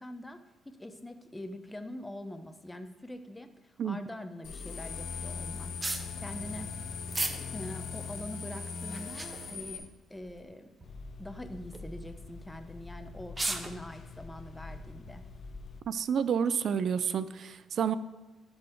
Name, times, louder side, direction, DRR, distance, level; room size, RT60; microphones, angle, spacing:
voice 1, 0.0-5.7 6.2-6.7 7.5-10.7 11.2-15.2, left 1 dB, 10° left, 8 dB, 0.8 m, -44 dB
sound 1, 4.4-9.8, left 5 dB, 80° left, 1.7 m, -39 dB
sound 2, 5.8-6.1 7.1-7.4 7.9-8.0 8.8-9.5 10.2-10.5 10.8-10.9 11.6-11.8 12.8-12.9 13.2-13.8, right 2 dB, 25° right, 0.8 m, -34 dB
sound 3, 10.8-15.8, left 3 dB, 50° left, 0.7 m, -46 dB
voice 2, 15.9-17.9, right 7 dB, 60° right, 15 dB, 0.4 m, -29 dB
12.5 x 4.1 x 4.6 m, 1.2 s
cardioid pair, 90°, 0 cm